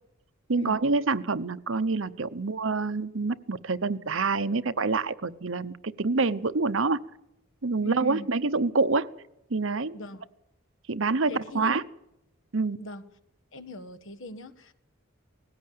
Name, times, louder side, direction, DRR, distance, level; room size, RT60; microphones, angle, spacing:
voice 1, 0.5-7.0 7.6-9.1 9.5-9.9 10.9-11.8 12.5-12.8, right 3 dB, 65° right, 13 dB, 0.9 m, -26 dB
voice 2, 7.8-8.3 9.9-10.2 11.3-11.7 12.8-13.0 13.5-14.7, equal, 65° left, 8 dB, 1.4 m, -40 dB
19.0 x 16.5 x 8.6 m, 0.83 s
head